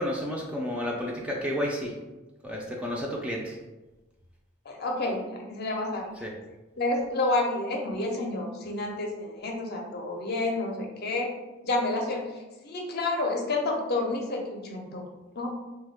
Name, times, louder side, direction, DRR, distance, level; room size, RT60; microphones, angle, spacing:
voice 1, 0.0-1.9 2.4-3.6 6.2-6.3, equal, 5° right, -2 dB, 0.3 m, -31 dB
voice 2, 4.7-6.1 6.8-11.3 11.6-12.3 12.6-15.0 15.4-15.5, left 2 dB, 50° left, 1 dB, 0.5 m, -29 dB
3.0 x 2.2 x 3.4 m, 1.1 s
head